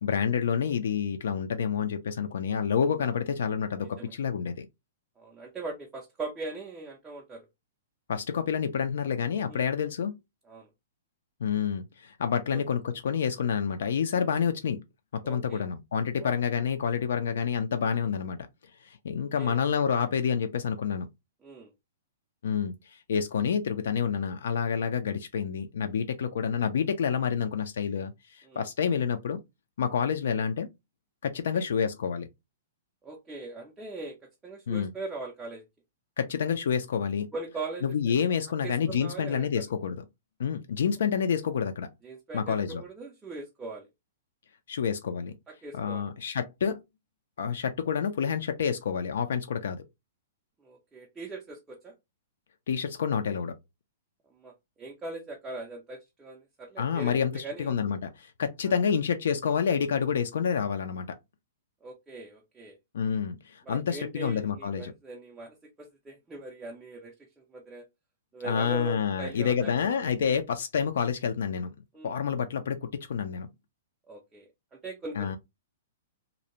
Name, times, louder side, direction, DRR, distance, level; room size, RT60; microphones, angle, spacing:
voice 1, 0.0-4.7 8.1-10.2 11.4-14.8 15.1-18.5 18.8-21.1 22.4-29.4 29.8-30.7 31.2-32.3 34.7-34.9 36.2-37.3 37.8-40.1 40.4-41.9 42.3-42.8 44.7-45.3 45.7-46.8 47.4-49.8 52.7-53.6 56.8-61.2 62.9-64.9 68.4-71.7 72.0-73.5 75.2-75.4, left 7 dB, 70° left, 0.3 m, -28 dB
voice 2, 3.8-4.1 5.2-7.4 9.4-9.7 10.5-10.7 12.5-12.6 15.2-15.6 16.2-16.4 19.4-19.6 21.4-21.7 28.4-28.6 31.5-31.6 33.0-35.6 37.3-38.3 38.6-39.5 42.0-43.9 45.5-46.0 50.6-51.9 54.4-57.8 58.7-58.8 61.8-62.8 63.7-67.8 68.3-69.7 71.9-72.2 74.1-75.4, right 3 dB, 10° right, 0.3 m, -41 dB
2.5 x 2.0 x 2.8 m
hypercardioid pair, 175°, 0 cm